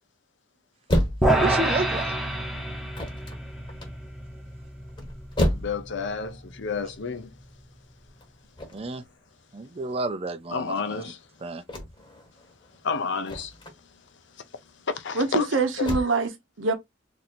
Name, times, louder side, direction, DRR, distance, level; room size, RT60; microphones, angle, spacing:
sound 1, 0.9-16.0, equal, 25° left, 1.0 m, -32 dB
sound 2, 1.2-7.6, right 1 dB, ahead, 0.8 m, -29 dB
voice 1, 1.4-2.1 8.7-9.0 9.5-11.0 11.4-11.6, right 2 dB, 30° right, 0.5 m, -30 dB
voice 2, 5.5-7.3 10.5-11.2 12.8-13.5 14.9-15.5 15.8-15.9, left 5 dB, 65° left, 0.6 m, -30 dB
voice 3, 15.1-16.7, right 3 dB, 75° right, 0.8 m, -25 dB
2.9 x 2.6 x 4.2 m
head